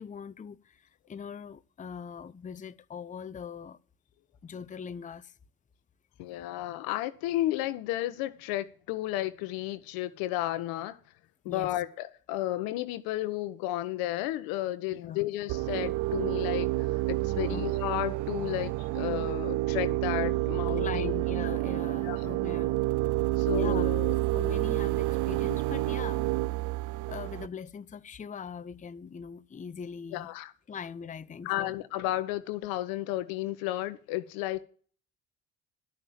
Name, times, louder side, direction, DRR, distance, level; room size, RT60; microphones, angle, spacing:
voice 1, 0.0-3.8 4.4-5.3 11.5-11.7 14.9-15.2 17.4-17.6 20.8-22.7 23.5-24.0 24.3-26.3 27.1-30.3 30.7-31.7, left 6 dB, 20° left, 0.6 m, -41 dB
voice 2, 6.2-11.0 11.4-21.1 22.0-22.3 23.4-24.2 30.1-30.5 31.4-34.6, left 15 dB, 80° left, 0.9 m, -33 dB
sound 1, 15.5-27.5, right 18 dB, 60° right, 0.5 m, -29 dB
11.0 x 5.8 x 7.3 m
hypercardioid pair, 65°, 35 cm